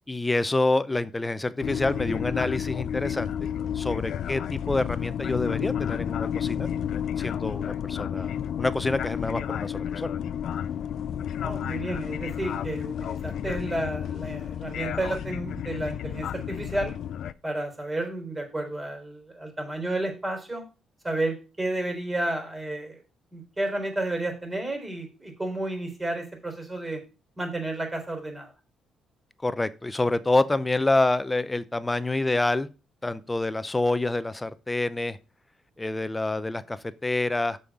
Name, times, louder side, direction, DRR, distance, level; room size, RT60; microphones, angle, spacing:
voice 1, 0.1-3.3 3.7-6.7 7.2-10.1 29.4-32.7 33.0-35.2 35.8-37.6, left 2 dB, 15° left, 0.7 m, -27 dB
sound 1, 1.6-17.3, left 9 dB, 70° left, 0.4 m, -31 dB
voice 2, 11.4-16.9 17.4-20.6 21.0-23.0 23.3-27.0 27.4-28.5, right 2 dB, 20° right, 3.8 m, -31 dB
6.9 x 5.6 x 6.1 m
cardioid pair, 90°, 0 cm